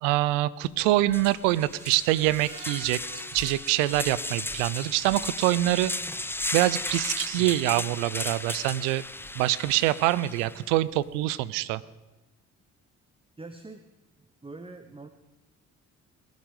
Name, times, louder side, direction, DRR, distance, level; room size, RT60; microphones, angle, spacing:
voice 1, 0.0-3.0 3.3-5.9 6.5-9.0 9.4-11.8, right 16 dB, 90° right, 20 dB, 0.5 m, -25 dB
sound 1, 0.6-0.7 1.1-10.6, left 2 dB, 5° left, 0.6 m, -35 dB
Screech, 1.7-4.7 5.1-5.2 5.6-5.7, right 2 dB, 65° right, 3.1 m, -48 dB
voice 2, 13.4-13.8 14.4-15.1, right 3 dB, 15° right, 8 dB, 1.0 m, -43 dB
22.0 x 9.2 x 4.8 m, 1.0 s
hypercardioid pair, 50°, 35 cm